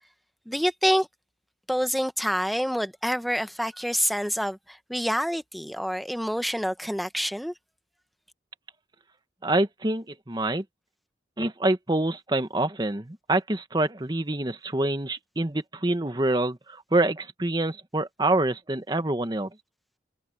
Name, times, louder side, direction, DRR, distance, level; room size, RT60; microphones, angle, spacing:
voice 1, 0.5-1.1 1.7-7.5, equal, ahead, 1.0 m, -27 dB
voice 2, 9.4-10.6 11.4-19.5, right 2 dB, 25° right, 1.2 m, -26 dB
open air
head